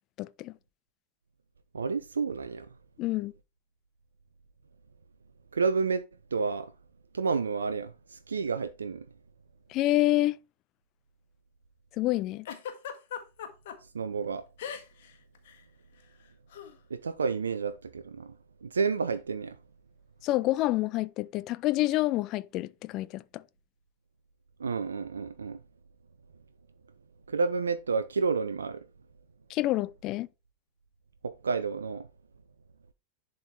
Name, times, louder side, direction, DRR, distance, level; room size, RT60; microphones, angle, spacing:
voice 1, 0.2-0.5 3.0-3.3 9.7-10.4 12.0-12.5 20.2-23.4 29.5-30.3, left 17 dB, 40° left, 0.4 m, -28 dB
voice 2, 1.7-2.7 5.5-6.0 6.3-6.7 7.1-9.1 13.9-14.4 16.9-18.4 18.6-19.6 24.6-25.6 27.3-28.9 31.2-32.1, right 5 dB, 70° right, 0.5 m, -30 dB
Giggle, 12.5-13.8 14.6-15.1 15.4-15.6 16.5-16.7, left 8 dB, 55° left, 1.5 m, -38 dB
10.5 x 3.9 x 4.3 m
figure-of-eight pair, 90°, 0 cm